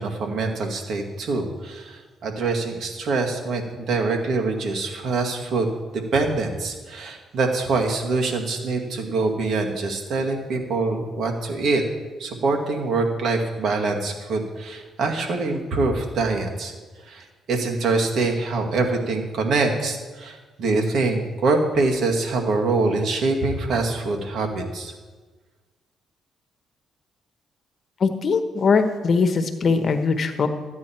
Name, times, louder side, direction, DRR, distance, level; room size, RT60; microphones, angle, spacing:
voice 1, 0.0-11.8 12.2-16.7 17.1-24.9, right 3 dB, 60° right, 2 dB, 2.0 m, -24 dB
voice 2, 28.0-30.5, left 4 dB, 50° left, 7 dB, 1.2 m, -21 dB
13.5 x 9.5 x 4.5 m, 1.3 s
cardioid pair, 90°, 0 cm